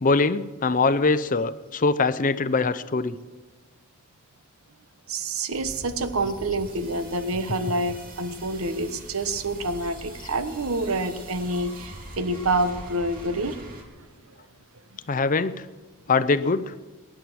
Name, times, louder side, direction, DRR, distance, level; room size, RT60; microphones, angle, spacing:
voice 1, 0.0-3.2 15.1-15.5 16.1-16.7, left 3 dB, 40° left, 14 dB, 0.6 m, -22 dB
voice 2, 5.1-13.6, right 2 dB, 75° right, 11 dB, 1.1 m, -27 dB
sound 1, 5.5-13.8, right 1 dB, 40° right, 2.6 m, -42 dB
22.5 x 10.5 x 6.1 m, 1.3 s
head